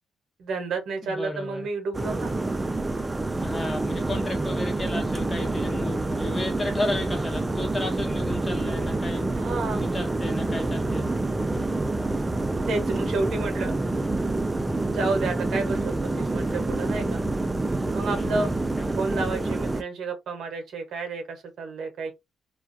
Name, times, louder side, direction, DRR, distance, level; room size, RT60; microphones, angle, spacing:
voice 1, 0.4-2.3 9.3-9.9 12.6-13.7 14.9-17.2 17.9-18.5 19.0-22.1, right 3 dB, 70° right, 0.8 m, -30 dB
voice 2, 1.0-1.7 3.4-11.1 18.1-18.9, left 2 dB, 25° left, 1.1 m, -34 dB
sound 1, 1.9-19.8, right 2 dB, 15° right, 0.3 m, -27 dB
2.3 x 2.2 x 2.5 m
cardioid pair, 90°, 0 cm